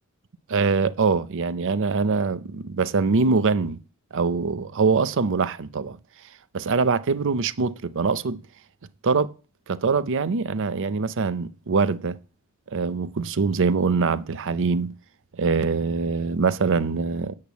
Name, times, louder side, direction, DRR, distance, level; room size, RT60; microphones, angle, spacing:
voice 1, 0.5-3.8 4.1-6.0 6.5-8.4 9.0-9.3 9.7-12.2 12.7-14.9 15.3-17.4, right 4 dB, 60° right, 0.6 m, -23 dB
8.7 x 6.7 x 8.3 m
head